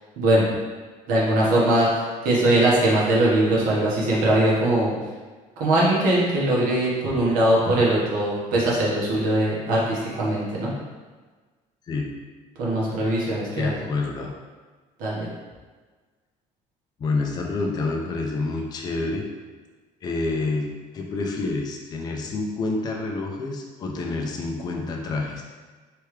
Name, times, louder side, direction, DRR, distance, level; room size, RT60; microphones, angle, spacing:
voice 1, 0.2-0.5 1.1-4.9 5.6-10.7 12.6-13.8 15.0-15.3, right 1 dB, 75° right, -5 dB, 1.2 m, -21 dB
voice 2, 11.9-12.2 13.6-14.4 17.0-19.3 20.0-25.4, left 3 dB, 30° left, 0 dB, 0.4 m, -28 dB
3.3 x 3.3 x 3.2 m, 1.4 s
cardioid pair, 160°, 14 cm